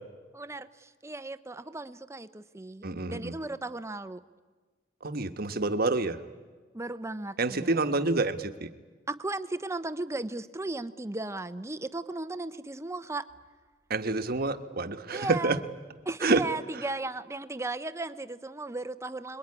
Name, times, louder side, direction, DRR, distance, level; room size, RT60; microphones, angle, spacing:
voice 1, 0.3-4.2 6.7-8.0 9.1-13.3 15.1-15.6 16.0-19.4, right 2 dB, 15° right, 13 dB, 0.7 m, -36 dB
voice 2, 2.8-3.3 5.0-6.2 7.4-8.7 13.9-15.6 16.2-16.4, right 3 dB, 50° right, 8 dB, 1.3 m, -28 dB
25.5 x 22.0 x 9.8 m, 1.4 s
head